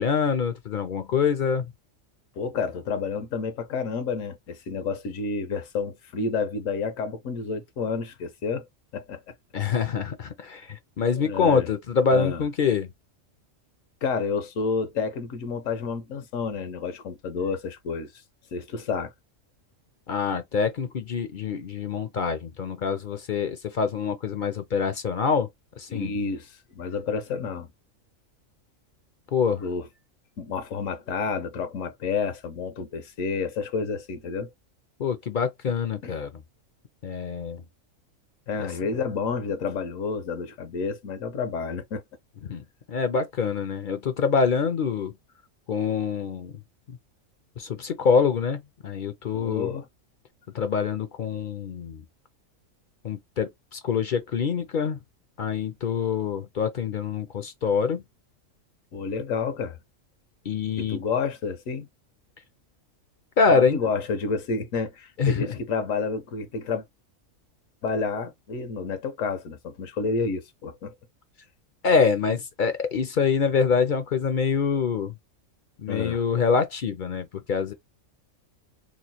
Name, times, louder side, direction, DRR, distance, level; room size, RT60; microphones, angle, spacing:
voice 1, 0.0-1.7 9.5-12.9 20.1-25.5 25.8-26.1 29.3-29.6 35.0-36.4 37.0-37.6 42.5-45.1 45.7-46.5 46.9-47.0 47.6-49.7 50.5-52.0 53.0-55.0 55.4-58.0 60.5-61.0 63.4-63.8 65.2-65.5 71.8-75.1 75.8-77.7, left 5 dB, 55° left, 0.6 m, -25 dB
voice 2, 2.4-8.7 8.9-9.3 11.2-11.7 12.1-12.4 14.0-18.1 18.5-19.1 25.9-27.7 29.6-29.9 30.4-34.5 36.0-36.1 38.5-42.0 49.3-49.9 58.9-59.8 60.8-61.9 63.5-66.8 67.8-70.9 75.9-76.2, left 5 dB, 80° left, 1.2 m, -30 dB
3.1 x 2.2 x 4.1 m
omnidirectional pair, 1.4 m